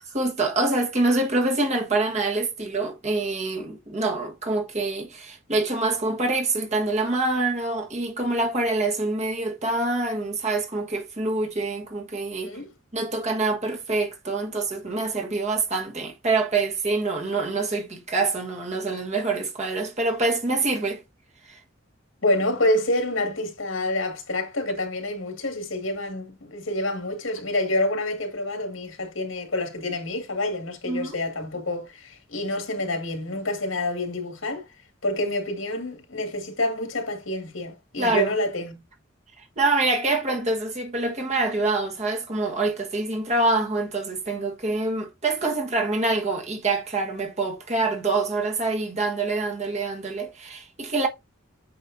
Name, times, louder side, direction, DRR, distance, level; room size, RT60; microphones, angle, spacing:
voice 1, 0.1-12.6 12.9-21.0 21.4-21.6 30.8-31.1 38.0-38.3 39.4-51.1, right 3 dB, 35° right, 1.5 m, -25 dB
voice 2, 22.2-34.7 35.0-38.8, left 1 dB, 80° left, 2.0 m, -27 dB
8.6 x 5.5 x 2.7 m
head